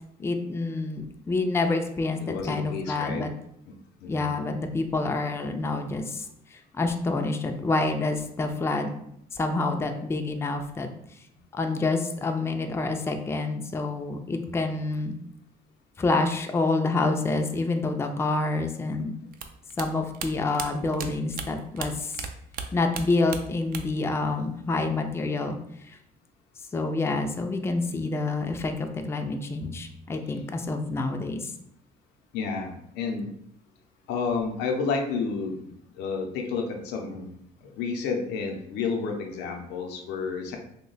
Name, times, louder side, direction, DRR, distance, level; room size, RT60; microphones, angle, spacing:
voice 1, 0.2-3.3 4.1-6.2 6.5-8.9 9.3-10.9 11.5-15.2 16.0-19.2 19.8-22.2 22.7-25.6 25.9-26.0 26.7-31.5, left 3 dB, 15° left, 5 dB, 0.3 m, -27 dB
voice 2, 2.2-3.3 3.7-3.8 4.0-4.3 30.2-30.4 32.3-33.3 34.1-40.6, left 5 dB, 90° left, 3 dB, 0.6 m, -31 dB
sound 1, 19.3-22.3 22.5-24.1 24.3-25.1, right 6 dB, 60° right, 0.4 m, -36 dB
2.8 x 2.2 x 3.9 m, 0.72 s
cardioid pair, 110°, 17 cm